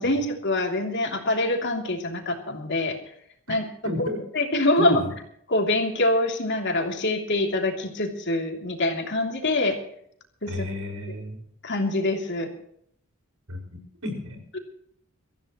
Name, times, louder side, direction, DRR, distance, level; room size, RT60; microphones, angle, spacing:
voice 1, 0.0-3.0 3.5-3.6 4.0-4.1 4.3-5.0 5.5-9.8 10.4-10.7 11.6-12.5 14.5-14.6, left 2 dB, 55° left, 3 dB, 3.1 m, -25 dB
voice 2, 3.8-4.2 4.8-5.1 10.5-11.4 13.5-14.4, left 1 dB, 80° right, 3 dB, 5.7 m, -31 dB
24.0 x 15.0 x 3.1 m, 0.67 s
head